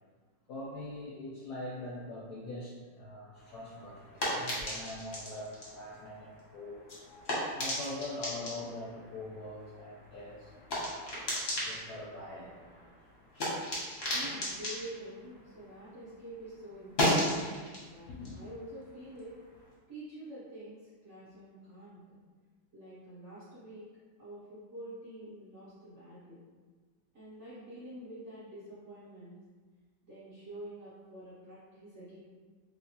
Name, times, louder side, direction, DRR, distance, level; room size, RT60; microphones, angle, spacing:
voice 1, 0.5-6.9 7.5-10.5 10.8-11.3 11.6-12.5 18.1-18.3, left 2 dB, 70° left, -7 dB, 0.9 m, -43 dB
sound 1, 3.4-16.1 16.4-19.7, left 1 dB, 45° left, 0.9 m, -37 dB
voice 2, 14.1-17.4 17.8-19.4 19.9-22.2 22.7-23.8 24.2-26.4 27.1-29.4 30.0-32.2, right 1 dB, 55° right, -12 dB, 0.8 m, -47 dB
3.0 x 3.0 x 2.8 m, 1.4 s
omnidirectional pair, 2.2 m